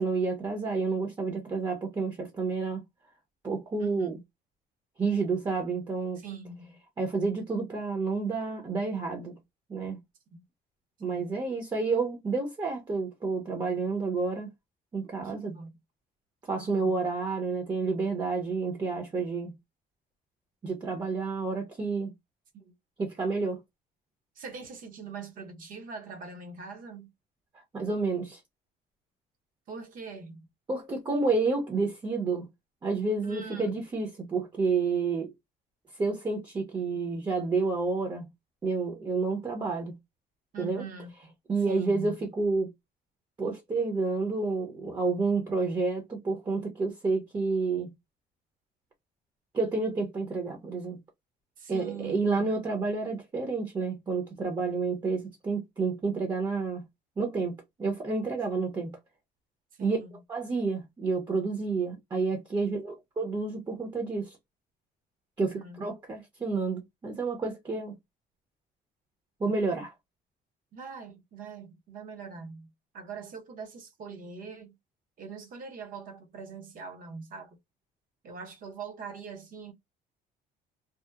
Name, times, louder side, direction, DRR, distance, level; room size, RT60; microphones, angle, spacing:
voice 1, 0.0-2.8 3.4-4.2 5.0-6.2 7.0-9.3 9.7-10.0 11.0-14.5 14.9-15.5 16.5-19.5 20.6-22.1 23.0-23.6 27.7-28.4 30.7-32.5 32.8-35.3 36.0-38.3 38.6-39.9 40.6-40.8 41.5-42.7 43.4-47.9 49.5-51.0 51.7-56.8 57.2-58.9 59.8-60.0 60.3-64.4 65.4-65.5 65.8-67.9 69.4-69.9, right 4 dB, 25° right, 0.6 m, -29 dB
voice 2, 3.8-4.2 6.2-6.8 10.3-10.4 11.1-11.4 15.2-15.8 16.5-16.9 22.5-22.7 24.4-27.1 29.7-30.5 33.2-33.8 40.5-41.1 41.7-42.2 51.6-52.5 59.8-60.1 62.6-62.7 65.4-65.8 70.7-74.7 75.2-77.6 78.2-79.7, right 5 dB, 55° right, 0.8 m, -42 dB
2.8 x 2.0 x 2.2 m
cardioid pair, 110°, 17 cm